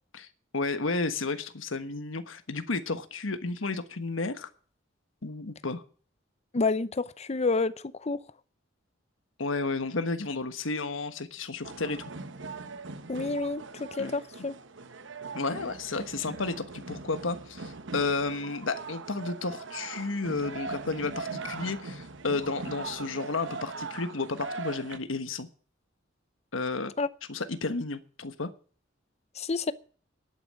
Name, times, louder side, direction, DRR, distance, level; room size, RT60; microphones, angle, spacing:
voice 1, 0.5-4.5 5.2-5.8 9.4-12.0 14.0-14.2 15.3-25.5 26.5-26.9 27.3-28.5, left 3 dB, 85° left, 1.3 m, -32 dB
voice 2, 6.5-7.7 8.0-8.2 13.1-14.6 27.0-27.1 29.4-29.7, left 3 dB, 35° left, 0.6 m, -29 dB
sound 1, 11.6-25.0, right 4 dB, 65° right, 1.1 m, -40 dB
10.5 x 9.1 x 7.7 m
head